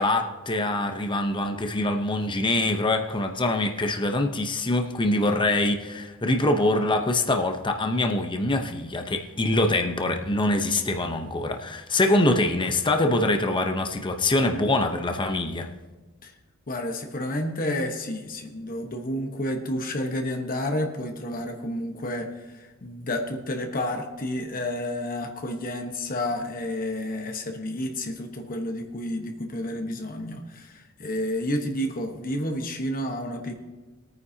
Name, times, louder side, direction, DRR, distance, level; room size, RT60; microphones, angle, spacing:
voice 1, 0.0-15.7, left 2 dB, 25° left, 5 dB, 0.8 m, -24 dB
voice 2, 16.7-33.5, left 1 dB, 40° left, 4 dB, 1.2 m, -30 dB
21.0 x 9.4 x 2.8 m, 1.3 s
head